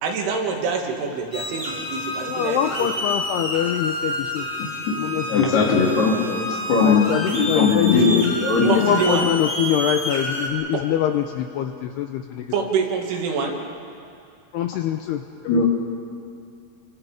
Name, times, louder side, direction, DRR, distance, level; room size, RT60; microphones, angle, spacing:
voice 1, 0.0-2.9 8.7-9.3 10.7-10.8 12.5-13.6, right 5 dB, 85° right, 1 dB, 4.6 m, -26 dB
sound 1, 1.3-10.5, equal, 15° left, 3.4 m, -29 dB
voice 2, 2.3-4.5 5.0-5.5 5.8-5.9 6.3-6.5 6.8-8.3 8.6-12.5 14.5-15.7, left 10 dB, 85° left, 6 dB, 2.4 m, -24 dB
voice 3, 5.3-6.2 6.4-7.1 7.3-8.8 15.5-15.7, left 4 dB, 60° left, -1 dB, 4.8 m, -19 dB
29.0 x 24.5 x 5.2 m, 2.5 s
omnidirectional pair, 5.4 m